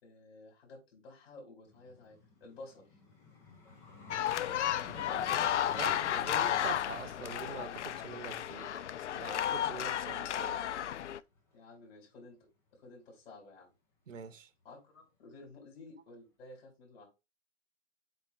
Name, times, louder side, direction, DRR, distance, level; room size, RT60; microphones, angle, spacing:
voice 1, 0.0-3.0 4.4-6.0 11.5-12.4 12.7-13.7 14.6-17.1, left 2 dB, 50° left, 4.2 m, -53 dB
Vehicle, 1.6-10.7 11.3-11.5, left 3 dB, 5° left, 0.5 m, -52 dB
sound 1, 4.1-11.2, left 11 dB, 65° left, 0.5 m, -33 dB
voice 2, 5.8-10.6 14.1-14.5, right 6 dB, 80° right, 1.3 m, -45 dB
7.9 x 3.3 x 4.3 m
hypercardioid pair, 145°, 37 cm